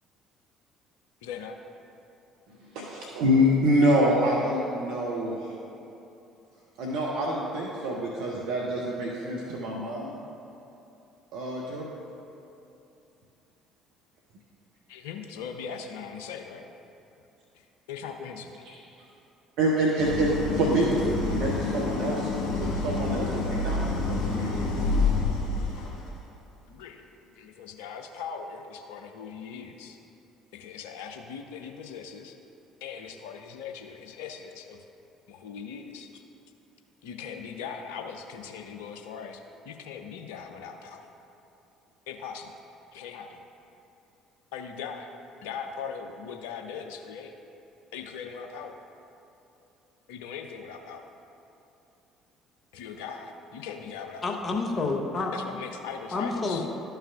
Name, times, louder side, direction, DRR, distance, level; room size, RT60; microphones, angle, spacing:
voice 1, 1.2-1.5 14.9-16.6 17.6-18.6 26.7-27.0 27.3-30.0 30.5-32.4 32.8-34.8 35.3-36.2 37.0-41.1 42.1-42.5 42.9-43.4 44.5-45.1 45.4-47.3 47.9-48.8 50.1-51.1 52.7-54.5 55.3-56.7, left 6 dB, 70° left, 5 dB, 0.5 m, -40 dB
voice 2, 2.7-5.5 6.8-10.1 11.3-11.9 18.7-18.8 19.6-24.8, equal, 65° right, -3 dB, 0.7 m, -26 dB
Idling, 20.0-26.1, left 3 dB, 50° left, 1.5 m, -28 dB
voice 3, 54.2-55.3 56.1-56.7, left 3 dB, 35° left, 1 dB, 0.9 m, -28 dB
12.0 x 5.6 x 2.4 m, 2.8 s
figure-of-eight pair, 55°, 0 cm